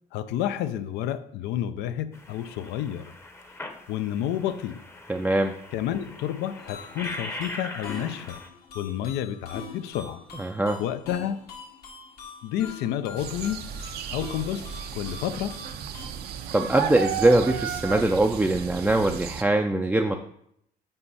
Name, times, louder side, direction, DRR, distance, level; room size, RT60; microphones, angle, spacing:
voice 1, 0.1-3.1 3.9-4.8 5.7-8.4 8.7-10.2 10.8-11.4 12.4-13.7 14.1-15.6, left 11 dB, 85° left, 0.4 m, -30 dB
sound 1, 2.1-8.5, left 2 dB, 15° left, 0.7 m, -41 dB
voice 2, 5.1-5.5 10.4-10.8 16.5-20.2, right 2 dB, 10° right, 0.3 m, -22 dB
sound 2, 6.6-16.1, left 4 dB, 70° left, 1.4 m, -44 dB
sound 3, 13.2-19.4, right 8 dB, 75° right, 0.5 m, -34 dB
5.5 x 4.5 x 4.1 m
cardioid pair, 110°, 17 cm